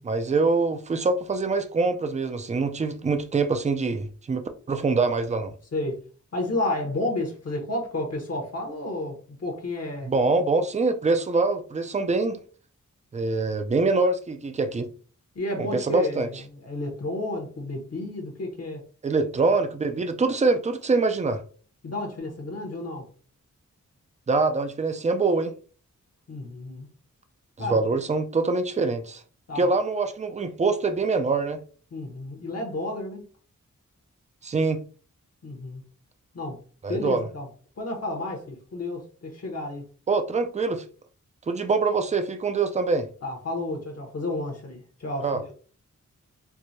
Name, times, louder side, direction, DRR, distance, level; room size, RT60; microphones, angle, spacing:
voice 1, 0.0-5.5 10.0-12.4 13.1-14.9 15.7-16.3 19.0-21.4 24.3-25.5 27.6-29.2 29.6-31.6 34.4-34.8 36.8-37.3 40.1-40.8 41.5-43.1 45.2-45.4, right 3 dB, 25° right, 0.4 m, -24 dB
voice 2, 6.3-10.1 15.3-18.8 21.8-23.0 26.3-26.9 27.6-27.8 29.5-29.7 31.9-33.2 35.4-35.8 36.3-36.6 36.9-37.5 37.8-39.9 43.2-45.5, left 2 dB, 55° left, 0.9 m, -31 dB
4.5 x 2.1 x 2.6 m
wide cardioid pair, 115°, 31 cm